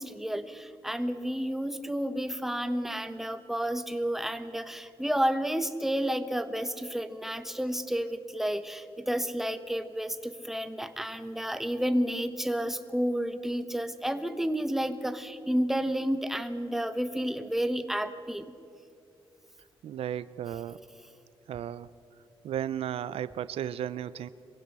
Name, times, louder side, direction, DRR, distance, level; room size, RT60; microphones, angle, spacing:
voice 1, 0.0-18.5, equal, 5° right, 10 dB, 1.3 m, -31 dB
voice 2, 19.8-20.8 21.5-21.9 22.4-24.3, right 10 dB, 85° right, 16 dB, 0.5 m, -34 dB
23.0 x 16.0 x 8.2 m, 2.6 s
cardioid pair, 95°, 10 cm